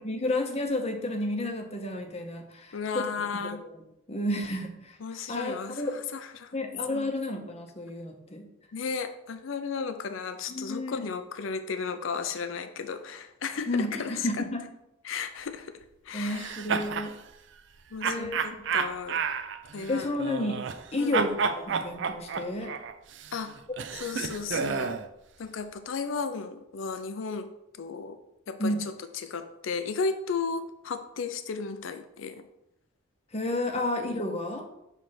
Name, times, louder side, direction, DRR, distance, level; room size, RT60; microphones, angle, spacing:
voice 1, 0.0-3.5 4.1-5.0 5.3-5.9 6.5-8.5 10.5-10.9 13.7-14.6 16.1-17.1 18.0-18.4 19.9-20.6 20.9-22.7 23.7-23.8 28.6-28.8 33.3-34.7, left 1 dB, 30° left, 4 dB, 0.8 m, -31 dB
voice 2, 2.7-3.6 5.0-6.6 6.9-7.1 8.7-14.3 15.0-16.6 17.9-19.2 19.7-20.1 21.0-21.2 23.3-23.5 23.9-25.0 25.4-27.5 27.8-28.2 28.5-32.5, left 5 dB, 70° left, 9 dB, 0.5 m, -34 dB
sound 1, 16.2-17.1 18.0-20.9 21.1-25.1, right 6 dB, 60° right, 0.4 m, -31 dB
6.3 x 3.3 x 5.9 m, 0.86 s
head